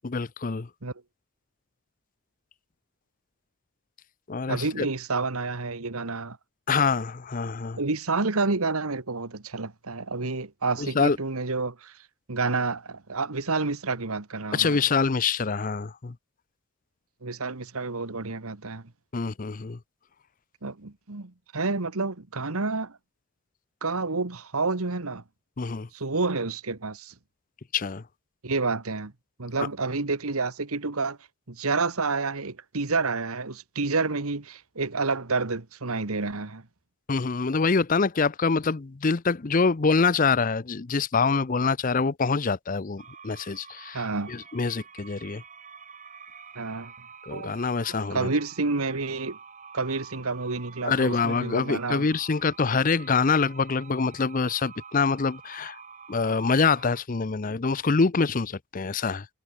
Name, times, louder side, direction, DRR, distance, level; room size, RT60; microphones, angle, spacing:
voice 1, 0.0-0.7 4.3-4.9 6.7-7.8 10.8-11.2 14.5-16.1 19.1-19.8 25.6-25.9 27.7-28.0 29.6-29.7 37.1-45.4 47.2-48.3 50.8-55.8 56.1-59.3, left 4 dB, 35° left, 0.6 m, -25 dB
voice 2, 4.5-6.4 7.8-11.9 12.3-14.8 17.2-18.8 20.6-23.0 23.8-25.2 25.9-27.1 28.4-29.1 29.4-31.2 31.5-36.6 43.9-44.3 46.5-46.9 47.3-47.6 48.1-49.4 49.7-52.0, right 3 dB, 80° right, 1.5 m, -29 dB
sound 1, 43.0-57.0, right 6 dB, 35° right, 2.8 m, -47 dB
head